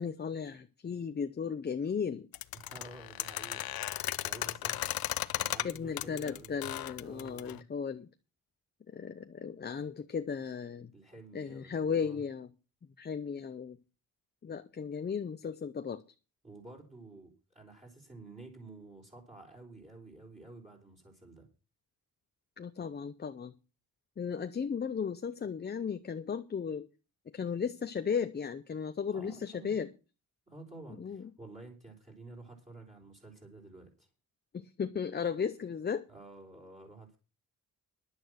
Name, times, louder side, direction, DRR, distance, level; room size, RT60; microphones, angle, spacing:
voice 1, 0.0-2.3 5.6-8.1 8.9-10.9 11.3-12.5 13.0-13.8 14.4-16.0 22.6-23.5 24.2-26.9 27.3-29.9 31.0-31.3 34.5-36.1, left 6 dB, 30° left, 0.6 m, -35 dB
sound 1, 2.3-7.6, left 13 dB, 75° left, 0.7 m, -35 dB
voice 2, 2.5-3.7 4.2-4.9 5.4-6.5 7.0-7.6 10.9-12.2 16.4-21.5 29.1-29.7 30.5-34.1 36.1-37.2, right 2 dB, 20° right, 3.9 m, -51 dB
11.0 x 9.3 x 6.3 m
wide cardioid pair, 165°, 36 cm